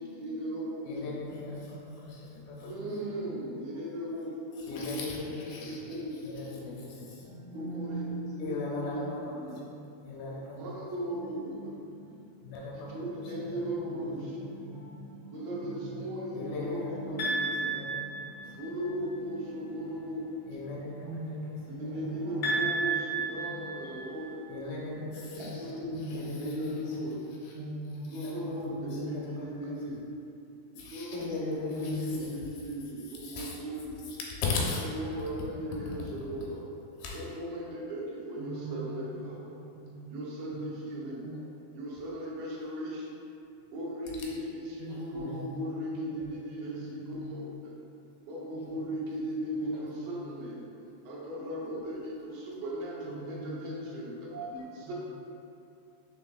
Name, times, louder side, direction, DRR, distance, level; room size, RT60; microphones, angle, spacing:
voice 1, 0.0-0.9 2.6-5.1 5.6-6.2 7.2-9.0 9.4-9.7 10.6-12.2 12.7-18.1 18.4-20.2 21.7-24.4 25.6-25.9 26.2-27.2 28.1-30.0 30.7-34.0 34.8-36.6 37.1-39.5 40.1-41.2 41.8-43.1 43.7-47.5 48.3-50.7 51.1-54.3 54.9-55.0, right 1 dB, 85° right, -4 dB, 2.7 m, -37 dB
voice 2, 0.9-2.9 4.6-7.3 8.4-10.9 12.4-13.6 16.3-18.5 20.5-21.6 21.8-22.2 23.8-23.9 24.5-27.0 27.4-27.6 28.1-29.6 29.9-30.0 30.8-32.3 33.0-33.6 34.1-34.2 34.4-34.8 35.9-36.2 37.0-37.2, left 3 dB, 85° left, -4 dB, 2.6 m, -39 dB
voice 3, 15.5-16.0 16.3-16.6 21.0-22.6 23.3-23.6 25.9-27.0 27.5-29.3 31.7-32.4 38.4-39.4 39.7-40.2 40.5-40.8 41.2-41.3 44.8-47.3 48.7-48.9 49.3-50.2 53.0-53.6 54.3-54.9, right 1 dB, 70° right, -13 dB, 1.6 m, -42 dB
sound 1, 17.2-18.8 22.4-24.4, right 3 dB, 65° left, 1.2 m, -32 dB
5.9 x 3.6 x 2.3 m, 2.8 s
omnidirectional pair, 4.1 m